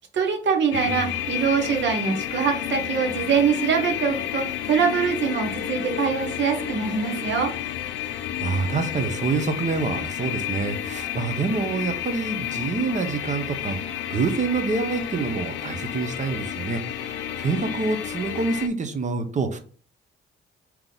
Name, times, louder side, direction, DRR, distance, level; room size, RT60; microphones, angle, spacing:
voice 1, 0.1-7.5, right 6 dB, 70° right, 4 dB, 1.0 m, -24 dB
sound 1, 0.7-18.7, left 10 dB, 85° left, 0.6 m, -31 dB
voice 2, 8.4-13.8 14.1-19.6, right 4 dB, 35° right, 8 dB, 0.8 m, -27 dB
3.7 x 3.0 x 3.8 m, 0.42 s
cardioid pair, 90°, 20 cm